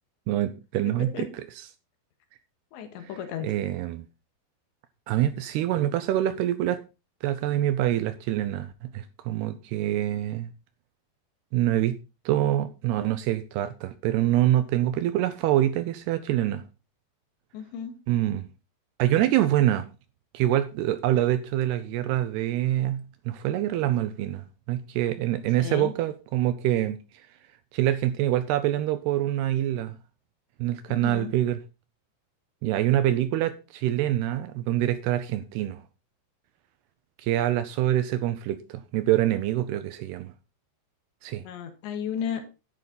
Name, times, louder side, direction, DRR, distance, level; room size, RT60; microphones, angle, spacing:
voice 1, 0.3-1.3 1.6-1.7 3.1-4.1 5.1-6.8 7.2-10.5 11.5-12.0 12.3-16.6 18.1-18.5 19.0-19.9 20.3-27.0 27.7-30.0 30.6-31.6 32.6-35.8 37.2-40.3 41.2-41.4, right 13 dB, 75° right, 2.6 m, -25 dB
voice 2, 2.7-3.5 17.5-17.9 25.6-25.9 30.9-31.3 41.5-42.6, left 8 dB, 80° left, 4.0 m, -34 dB
11.5 x 9.9 x 4.0 m
omnidirectional pair, 5.1 m